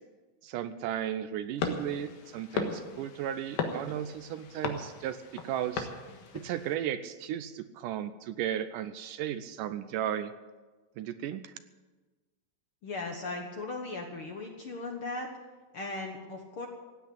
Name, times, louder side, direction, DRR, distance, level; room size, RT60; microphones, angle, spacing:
voice 1, 0.4-5.9 6.3-10.3 11.0-11.5, right 10 dB, 80° right, 12 dB, 2.1 m, -35 dB
sound 1, 1.6-6.7, left 5 dB, 85° left, 3.3 m, -37 dB
voice 2, 12.8-15.3 15.7-16.7, left 2 dB, 60° left, 2 dB, 1.5 m, -37 dB
16.5 x 9.1 x 8.7 m, 1.3 s
omnidirectional pair, 4.0 m